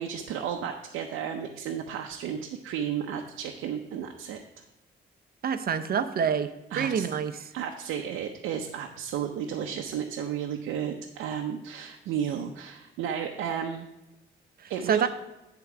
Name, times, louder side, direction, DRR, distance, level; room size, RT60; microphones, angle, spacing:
voice 1, 0.0-4.4 6.7-7.1 7.5-13.9 14.7-15.1, right 8 dB, 85° right, 3 dB, 0.7 m, -33 dB
voice 2, 5.4-6.5 6.7-7.5 14.6-15.1, right 7 dB, 50° right, 10 dB, 0.7 m, -27 dB
10.0 x 3.9 x 5.9 m, 0.97 s
cardioid pair, 90°, 20 cm